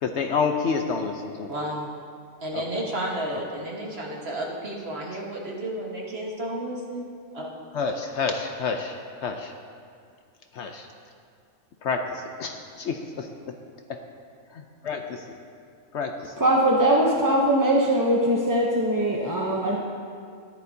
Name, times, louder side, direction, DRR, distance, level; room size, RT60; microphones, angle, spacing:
voice 1, 0.0-1.5 2.5-2.8 3.3-3.4 7.7-9.5 10.5-10.9 11.8-13.3 14.5-15.4 15.9-16.4, left 5 dB, 65° left, 4 dB, 0.8 m, -29 dB
voice 2, 1.5-1.9 2.4-7.5, right 1 dB, 45° right, -2 dB, 1.6 m, -32 dB
voice 3, 16.4-19.8, right 1 dB, 25° right, -2 dB, 0.5 m, -21 dB
14.0 x 10.5 x 2.7 m, 2.3 s
omnidirectional pair, 1.5 m